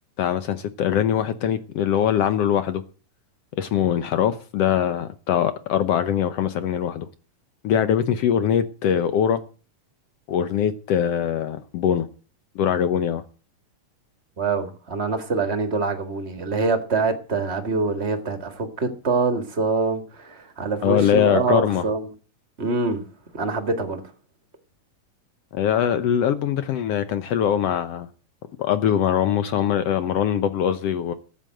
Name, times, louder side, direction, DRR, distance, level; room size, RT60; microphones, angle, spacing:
voice 1, 0.2-2.8 3.6-7.1 7.6-9.4 10.3-12.1 12.5-13.2 20.8-21.8 25.5-28.1 28.6-31.1, left 9 dB, 75° left, 1.5 m, -22 dB
voice 2, 14.4-22.1 22.6-23.0 23.3-24.0, right 4 dB, 30° right, 1.2 m, -25 dB
14.0 x 9.2 x 7.7 m
omnidirectional pair, 3.7 m